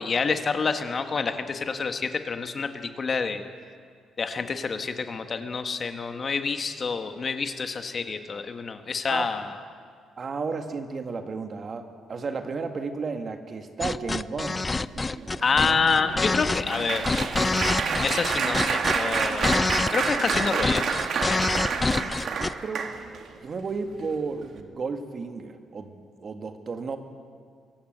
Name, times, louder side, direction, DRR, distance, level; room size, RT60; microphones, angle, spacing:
voice 1, 0.0-3.4 4.2-9.5 15.4-17.2 18.0-19.6 19.9-20.9 21.2-21.5, left 5 dB, 40° left, 7 dB, 1.6 m, -27 dB
voice 2, 10.2-14.6 22.3-22.9 23.4-27.0, right 4 dB, 45° right, 6 dB, 2.0 m, -33 dB
sound 1, 13.8-22.5, left 3 dB, 25° left, 0.5 m, -27 dB
Applause, 14.9-23.3 23.9-24.1 24.4-24.6, right 5 dB, 60° right, 2.0 m, -29 dB
24.0 x 16.0 x 8.0 m, 2.1 s
cardioid pair, 90°, 0 cm